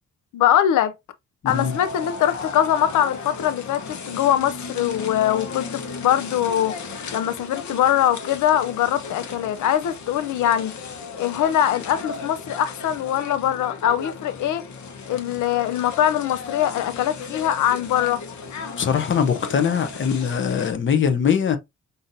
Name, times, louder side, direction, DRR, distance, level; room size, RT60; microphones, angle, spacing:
voice 1, 0.3-0.9 1.5-6.8 7.1-10.7 11.2-14.6 15.1-18.2, left 11 dB, 85° left, 0.5 m, -22 dB
voice 2, 1.4-1.8 18.8-21.6, left 7 dB, 40° left, 0.7 m, -22 dB
sound 1, 1.5-20.7, left 4 dB, 70° left, 1.0 m, -35 dB
5.6 x 2.6 x 2.6 m
cardioid pair, 125°, 30 cm